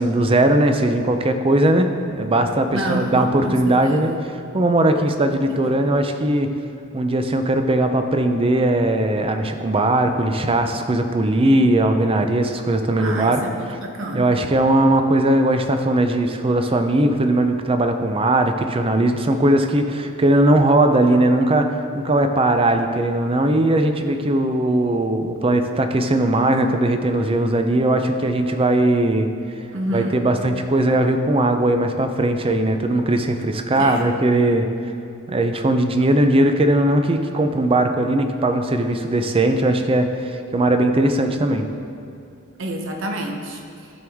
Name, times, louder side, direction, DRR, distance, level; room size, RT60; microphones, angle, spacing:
voice 1, 0.0-4.1 4.5-6.5 6.9-13.4 13.7-13.8 14.1-29.3 29.9-34.7 35.3-41.7, right 1 dB, 25° right, 6 dB, 0.5 m, -19 dB
voice 2, 2.7-4.2 5.5-5.6 13.0-14.3 29.7-30.3 33.8-34.1 42.6-43.6, right 1 dB, 60° right, 2 dB, 1.0 m, -28 dB
12.5 x 6.1 x 3.6 m, 2.6 s
head